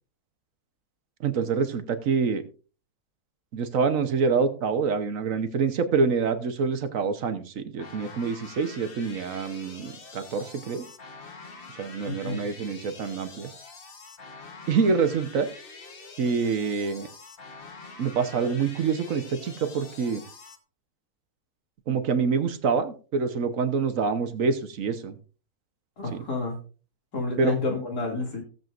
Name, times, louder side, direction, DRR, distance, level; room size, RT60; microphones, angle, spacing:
voice 1, 1.2-2.5 3.5-10.9 11.8-13.5 14.7-15.5 16.2-17.1 18.0-20.2 21.9-25.2 26.1-26.2 27.4-27.5, right 5 dB, 60° right, 9 dB, 1.3 m, -26 dB
sound 1, 7.8-20.6, left 4 dB, 40° left, 1.3 m, -45 dB
voice 2, 12.0-12.4 26.0-26.6 27.1-28.4, left 3 dB, 80° left, 1 dB, 3.0 m, -30 dB
17.5 x 7.6 x 2.5 m, 0.37 s
omnidirectional pair, 1.7 m